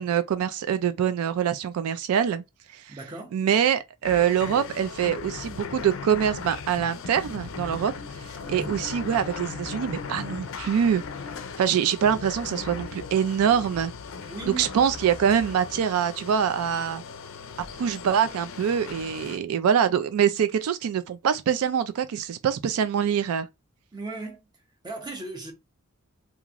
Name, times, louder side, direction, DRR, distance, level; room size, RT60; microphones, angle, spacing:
voice 1, 0.0-2.4 2.7-3.0 3.3-7.9 8.5-11.0 11.6-13.9 14.6-17.0 17.8-23.5, right 8 dB, 85° right, 0.3 m, -24 dB
voice 2, 2.9-3.3 8.5-8.8 10.6-10.8 14.3-14.7 23.9-24.5 24.8-25.5, right 3 dB, 20° right, 0.6 m, -37 dB
sound 1, 4.0-19.4, left 5 dB, 65° left, 0.4 m, -38 dB
2.9 x 2.5 x 2.4 m
head